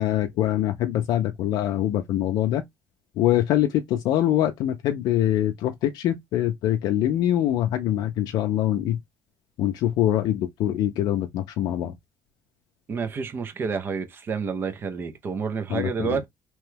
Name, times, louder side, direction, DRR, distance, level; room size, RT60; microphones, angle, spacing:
voice 1, 0.0-2.6 3.2-9.0 9.6-11.9 15.7-16.2, left 12 dB, 75° left, 0.5 m, -24 dB
voice 2, 12.9-16.3, right 5 dB, 30° right, 0.6 m, -29 dB
3.0 x 2.2 x 3.2 m
cardioid pair, 160°, 7 cm